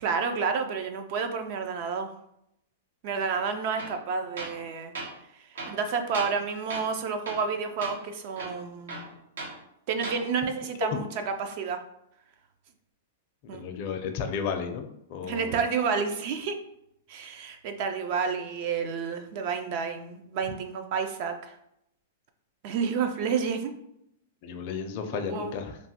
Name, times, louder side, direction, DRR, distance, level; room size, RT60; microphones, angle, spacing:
voice 1, 0.0-2.1 3.0-4.9 5.7-9.0 9.9-11.8 13.5-13.6 15.2-16.6 17.1-21.5 22.6-23.7 25.1-25.5, right 5 dB, 50° right, 6 dB, 0.3 m, -30 dB
Tools, 3.8-4.0 4.4-4.6 4.9-5.1 5.6-6.4 6.7-7.0 7.3-7.5 7.8-8.0 8.4-9.6 9.9-10.2, right 3 dB, 85° right, 0.8 m, -37 dB
voice 2, 13.4-15.6 24.4-25.8, left 6 dB, 45° left, 5 dB, 0.4 m, -33 dB
3.0 x 2.1 x 2.8 m, 0.78 s
hypercardioid pair, 145°, 0 cm